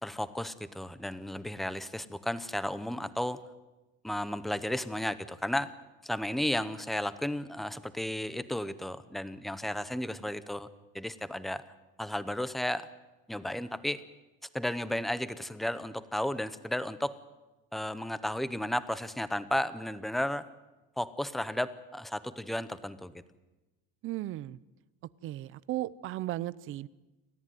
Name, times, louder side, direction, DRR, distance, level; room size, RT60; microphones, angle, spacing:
voice 1, 0.0-3.4 4.0-5.7 6.0-10.7 10.9-11.6 12.0-12.9 13.3-14.0 14.5-17.2 17.7-20.5 21.0-23.1, left 1 dB, ahead, 14 dB, 0.7 m, -33 dB
voice 2, 24.0-24.6 25.2-26.9, right 15 dB, 45° right, 20 dB, 0.7 m, -35 dB
28.0 x 14.0 x 9.3 m, 1.1 s
cardioid pair, 155°, 30 cm